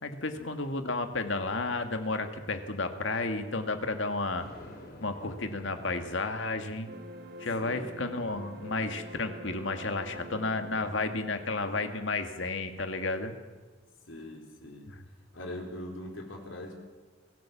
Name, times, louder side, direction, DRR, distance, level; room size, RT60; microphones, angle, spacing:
voice 1, 0.0-4.5 5.0-6.9 7.4-13.3, left 3 dB, 75° left, 7 dB, 1.9 m, -32 dB
Thunder, 4.4-6.9, left 1 dB, 50° left, 4.0 m, -49 dB
sound 1, 6.9-13.9, equal, 50° right, 2.2 m, -47 dB
voice 2, 7.6-7.9 14.1-14.9 15.3-16.7, left 1 dB, 90° left, 1 dB, 4.1 m, -42 dB
23.5 x 16.0 x 7.3 m, 1.4 s
head